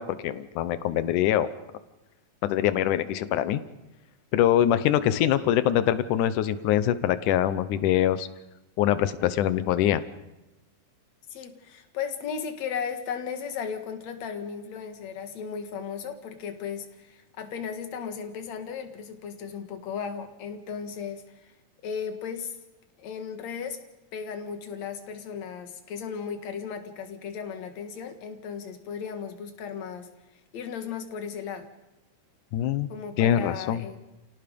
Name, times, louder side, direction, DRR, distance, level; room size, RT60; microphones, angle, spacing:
voice 1, 0.0-1.5 2.4-3.6 4.3-8.3 8.8-10.0 32.5-32.9 33.2-33.8, left 11 dB, 85° left, 13 dB, 2.4 m, -24 dB
voice 2, 11.3-21.5 21.8-22.5 23.0-23.8 24.1-30.1 30.5-31.7 32.9-34.0, left 7 dB, 65° left, 6 dB, 2.9 m, -35 dB
29.5 x 17.5 x 5.3 m, 0.99 s
omnidirectional pair, 3.5 m